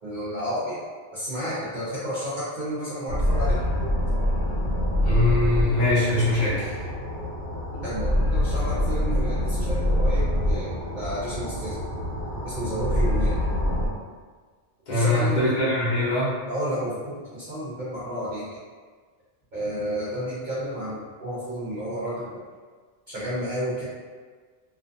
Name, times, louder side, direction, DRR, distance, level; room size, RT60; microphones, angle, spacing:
voice 1, 0.0-0.8 1.1-3.9 7.7-11.8 12.4-13.4 14.9-15.6 16.5-18.5 19.5-22.4 23.1-23.8, equal, 50° right, -10 dB, 0.7 m, -31 dB
sound 1, 3.1-13.9, left 1 dB, 65° left, 1.1 m, -25 dB
voice 2, 5.0-6.7 14.9-16.3, left 2 dB, 45° left, -11 dB, 0.9 m, -22 dB
2.4 x 2.3 x 2.5 m, 1.5 s
omnidirectional pair, 1.2 m